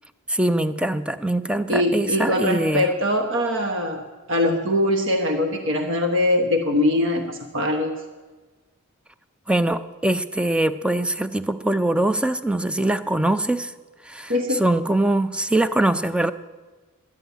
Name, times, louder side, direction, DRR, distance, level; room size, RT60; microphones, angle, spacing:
voice 1, 0.3-2.9 9.5-13.7 14.1-16.3, right 1 dB, 5° right, 0.4 m, -22 dB
voice 2, 1.7-4.0 4.3-7.9 14.3-14.6, left 1 dB, 60° right, 1.1 m, -22 dB
11.5 x 10.5 x 8.1 m
head